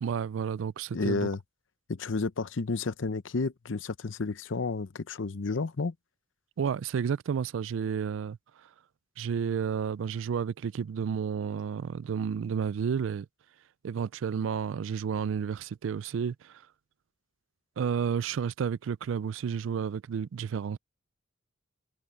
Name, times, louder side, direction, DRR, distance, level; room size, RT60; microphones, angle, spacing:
voice 1, 0.0-1.3 6.6-8.4 9.2-13.3 13.8-16.6 17.8-20.8, right 7 dB, 75° right, 0.3 m, -31 dB
voice 2, 0.9-1.4 1.9-5.9, left 3 dB, 70° left, 0.7 m, -31 dB
head